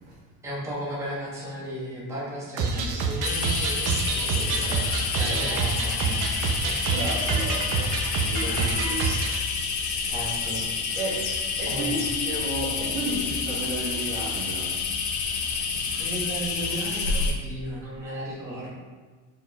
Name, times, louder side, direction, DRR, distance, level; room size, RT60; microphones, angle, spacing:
voice 1, 0.4-7.4 7.7-7.9 8.5-8.7 10.0-10.6 11.6-12.0 15.9-18.7, right 1 dB, 5° right, -7 dB, 0.9 m, -35 dB
sound 1, 2.6-9.4, right 4 dB, 45° right, 0.5 m, -27 dB
sound 2, 3.2-17.3, left 5 dB, 75° left, 0.8 m, -29 dB
voice 2, 6.9-7.7 8.2-9.2 11.0-14.8, right 2 dB, 70° right, -4 dB, 1.3 m, -33 dB
4.3 x 4.3 x 2.2 m, 1.4 s
cardioid pair, 135°, 46 cm